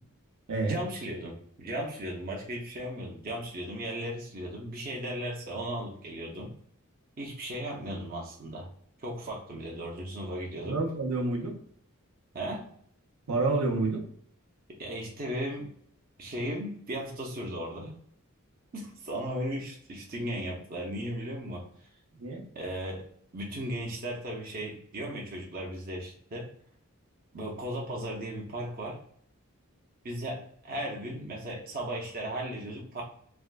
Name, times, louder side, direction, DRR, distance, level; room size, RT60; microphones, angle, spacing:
voice 1, 0.6-6.5 7.2-8.7 9.0-10.8 12.3-12.7 14.8-15.7 16.2-18.0 18.7-21.6 22.5-23.0 23.3-26.5 27.3-29.0 30.0-33.0, right 1 dB, 40° right, -2 dB, 0.6 m, -36 dB
voice 2, 10.6-11.5 13.3-14.0 22.2-22.4, right 3 dB, 75° right, 0 dB, 0.8 m, -28 dB
3.4 x 2.3 x 2.5 m, 0.63 s
head